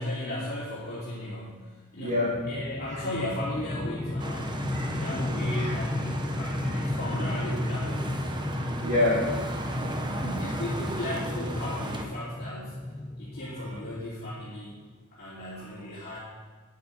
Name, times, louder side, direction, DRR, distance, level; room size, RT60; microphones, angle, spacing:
voice 1, 0.0-2.2 2.5-8.1 10.4-12.8 13.2-14.7 15.1-16.2, left 1 dB, 45° left, -9 dB, 2.9 m, -36 dB
voice 2, 2.0-2.4 2.9-3.0 4.6-5.1 5.5-5.8 6.4-6.7 7.1-7.3 8.5-10.5, left 2 dB, 35° right, -9 dB, 4.6 m, -30 dB
sound 1, 2.3-14.6, left 1 dB, 15° left, 0.4 m, -34 dB
sound 2, 4.2-12.1, right 1 dB, 20° right, 1.0 m, -35 dB
9.9 x 8.5 x 8.2 m, 1.4 s
head